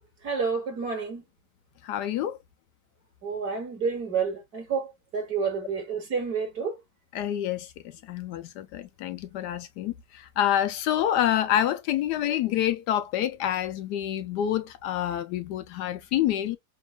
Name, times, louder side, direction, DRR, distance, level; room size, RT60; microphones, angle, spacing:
voice 1, 0.2-1.2 3.2-6.8, right 5 dB, 55° right, 2.4 m, -29 dB
voice 2, 1.8-2.4 7.1-7.7 8.1-16.6, left 11 dB, 75° left, 1.1 m, -27 dB
6.0 x 2.5 x 2.2 m
omnidirectional pair, 1.9 m